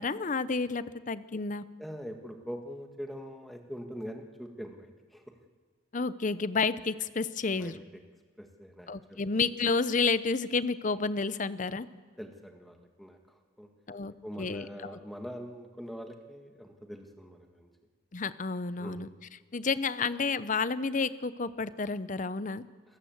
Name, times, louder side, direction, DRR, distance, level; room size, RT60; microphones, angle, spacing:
voice 1, 0.0-1.6 5.9-7.8 8.9-11.9 13.9-15.0 18.1-19.1 19.5-22.6, left 4 dB, 40° left, 15 dB, 0.7 m, -30 dB
voice 2, 1.8-5.4 7.5-7.7 8.4-9.3 12.2-13.2 13.6-13.7 14.2-17.7 18.8-19.0, equal, ahead, 3 dB, 1.8 m, -43 dB
28.0 x 14.5 x 7.9 m, 1.5 s
head